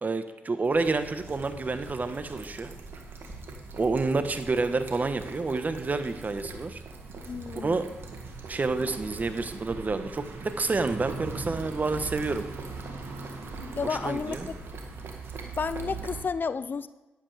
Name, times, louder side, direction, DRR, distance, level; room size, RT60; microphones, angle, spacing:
voice 1, 0.0-2.7 3.8-6.8 7.5-7.8 8.5-12.4 13.9-14.5, right 3 dB, 40° right, 10 dB, 1.2 m, -29 dB
sound 1, 0.6-16.2, right 3 dB, 65° right, 1.9 m, -41 dB
voice 2, 7.3-7.9 13.8-14.6 15.6-16.9, left 5 dB, 50° left, 14 dB, 0.5 m, -31 dB
11.0 x 10.5 x 3.4 m, 1.1 s
supercardioid pair, 45°, 4 cm